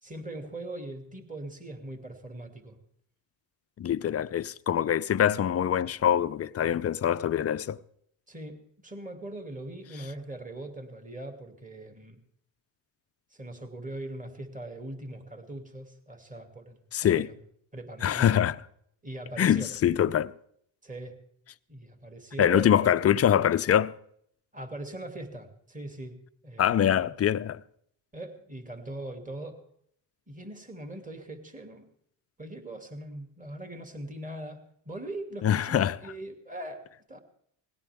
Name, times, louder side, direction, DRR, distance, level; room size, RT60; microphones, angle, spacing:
voice 1, 0.0-2.8 8.3-12.2 13.3-17.3 17.7-18.3 19.0-19.7 20.8-21.2 21.7-23.0 24.5-26.9 27.2-27.3 28.1-29.6 30.3-31.9 32.4-34.6 34.9-37.2, right 1 dB, 15° right, 2.6 m, -41 dB
voice 2, 3.8-7.8 16.9-17.3 18.0-18.6 19.4-20.3 22.4-23.9 26.6-27.6 35.4-36.0, left 9 dB, 30° left, 0.5 m, -24 dB
19.5 x 16.5 x 3.6 m
supercardioid pair, 75°, 49 cm